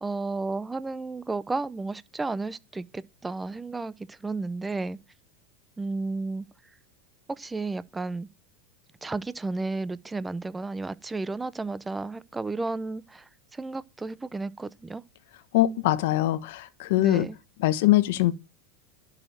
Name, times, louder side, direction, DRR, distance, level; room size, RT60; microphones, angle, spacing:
voice 1, 0.0-5.0 5.8-6.5 7.3-8.3 9.0-15.0 17.0-17.4, right 3 dB, 10° right, 0.6 m, -33 dB
voice 2, 15.5-17.3 17.6-18.3, left 16 dB, 70° left, 1.1 m, -22 dB
11.5 x 6.5 x 7.3 m
supercardioid pair, 140°, 0 cm